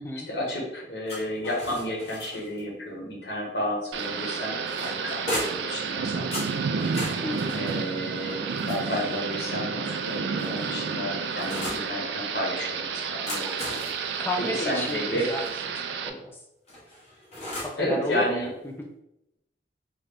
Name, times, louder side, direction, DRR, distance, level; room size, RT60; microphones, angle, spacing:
voice 1, 0.3-5.2 5.5-6.6 7.5-14.2 14.5-15.3 17.8-18.5, left 1 dB, 65° left, -3 dB, 1.2 m, -32 dB
sound 1, 1.1-2.6 4.0-5.8 6.3-9.2 10.1-11.9 13.0-15.6 16.7-17.8, left 1 dB, 35° left, 1.1 m, -38 dB
Thunder / Rain, 3.9-16.1, right 5 dB, 70° right, 0.3 m, -31 dB
voice 2, 7.2-7.6 14.2-15.5 15.7-16.4 17.6-18.9, left 1 dB, 10° left, 1 dB, 0.4 m, -33 dB
3.8 x 2.2 x 3.3 m, 0.85 s
head